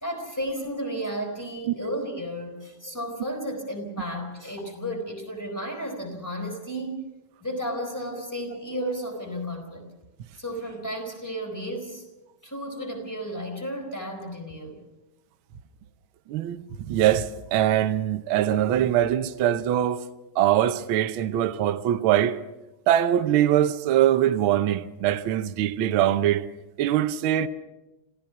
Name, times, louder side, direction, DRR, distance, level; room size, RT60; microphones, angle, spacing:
voice 1, 0.0-7.0 7.4-9.9 10.4-12.1 12.4-14.8, equal, 5° left, 4.1 m, -33 dB
voice 2, 16.3-20.0 20.3-22.4 22.9-26.4 26.8-27.5, right 11 dB, 85° right, 1.1 m, -22 dB
27.0 x 16.0 x 6.0 m
omnidirectional pair, 3.5 m